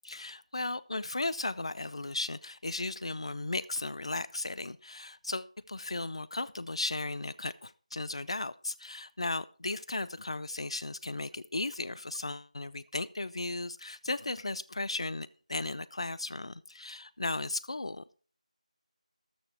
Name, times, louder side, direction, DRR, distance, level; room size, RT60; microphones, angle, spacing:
voice 1, 0.0-18.2, left 2 dB, 50° left, 19 dB, 0.6 m, -36 dB
13.5 x 6.7 x 4.5 m, 0.39 s
figure-of-eight pair, 165°, 4 cm